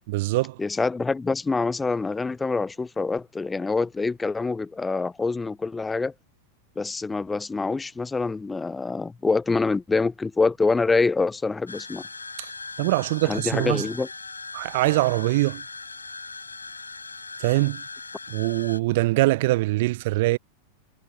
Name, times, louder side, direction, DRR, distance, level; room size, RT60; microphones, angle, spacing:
voice 1, 0.1-0.6 12.4-12.5 12.8-13.9 14.5-15.6 17.4-17.8 18.3-20.4, right 19 dB, 50° right, 0.5 m, -23 dB
voice 2, 0.6-6.1 6.8-12.0 13.2-14.1, left 3 dB, 10° left, 0.8 m, -25 dB
sound 1, 11.7-18.8, left 4 dB, 80° left, 0.7 m, -39 dB
figure-of-eight pair, 90°, 0 cm